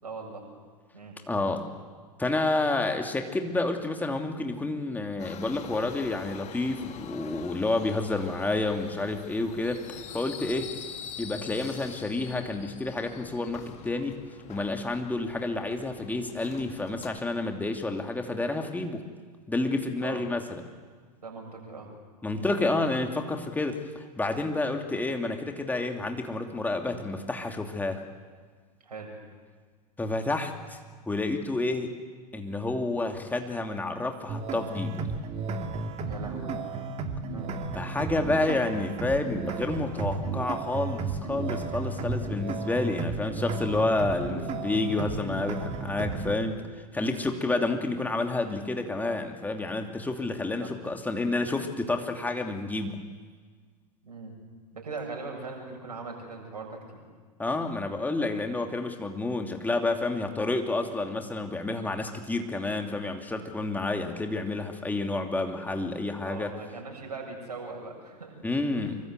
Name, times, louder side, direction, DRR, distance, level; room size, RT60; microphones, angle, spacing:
voice 1, 0.0-0.4 0.9-1.2 20.0-20.2 21.2-21.9 22.3-22.5 28.8-29.1 36.0-36.5 37.3-37.6 50.6-50.7 54.0-54.4 54.7-57.0 66.2-68.4 68.7-68.9, right 4 dB, 75° right, 1 dB, 7.2 m, -40 dB
voice 2, 1.3-1.7 2.2-10.7 11.2-14.2 14.5-19.0 19.5-20.6 22.2-28.0 30.0-30.8 31.1-31.9 32.3-35.1 37.7-46.6 46.9-53.1 57.4-66.5 68.4-69.0, left 2 dB, 10° left, 4 dB, 2.8 m, -29 dB
Subway metro underground, 5.2-17.2, left 9 dB, 35° left, 2.1 m, -45 dB
sound 1, 34.3-46.3, right 4 dB, 30° right, 2.4 m, -33 dB
25.0 x 23.5 x 8.2 m, 1.5 s
figure-of-eight pair, 90°, 20 cm